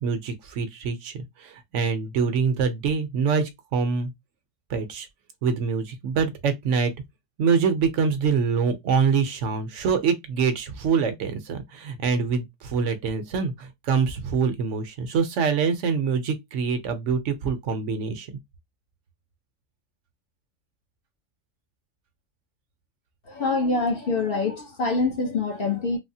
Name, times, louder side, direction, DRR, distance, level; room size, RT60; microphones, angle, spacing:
voice 1, 0.0-4.1 4.7-5.1 5.4-6.9 7.4-18.3, right 5 dB, 70° right, 0.9 m, -25 dB
voice 2, 23.3-26.0, left 3 dB, 50° left, 0.9 m, -25 dB
3.4 x 2.0 x 2.7 m
omnidirectional pair, 1.3 m